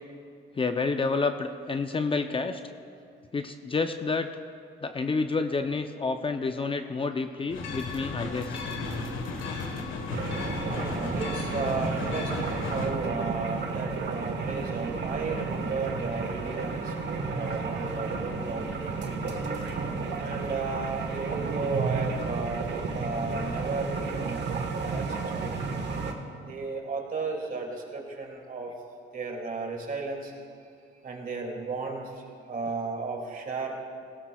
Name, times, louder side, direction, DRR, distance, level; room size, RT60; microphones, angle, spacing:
voice 1, 0.6-2.6 3.3-4.3 4.8-8.6 11.5-11.7 19.6-19.8, left 4 dB, 25° left, 7 dB, 0.6 m, -29 dB
sound 1, 7.5-12.9, left 4 dB, 85° left, 1.4 m, -34 dB
sound 2, 10.1-26.1, right 4 dB, 60° right, 1.4 m, -32 dB
voice 2, 10.6-19.4 20.2-22.7 22.9-25.0 25.3-25.7 26.4-28.7 29.1-30.3 31.0-32.0 32.5-33.8, right 4 dB, 45° right, 1 dB, 2.5 m, -34 dB
18.0 x 16.5 x 2.3 m, 2.3 s
cardioid pair, 90°, 20 cm